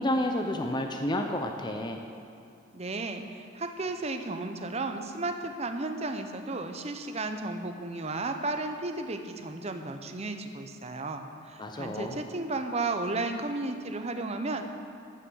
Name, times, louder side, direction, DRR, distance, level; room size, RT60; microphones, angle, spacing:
voice 1, 0.0-2.0 11.6-12.2, left 1 dB, 20° left, 4 dB, 0.6 m, -30 dB
voice 2, 2.7-14.6, right 2 dB, 30° right, 6 dB, 0.8 m, -34 dB
14.5 x 6.5 x 6.3 m, 2.6 s
head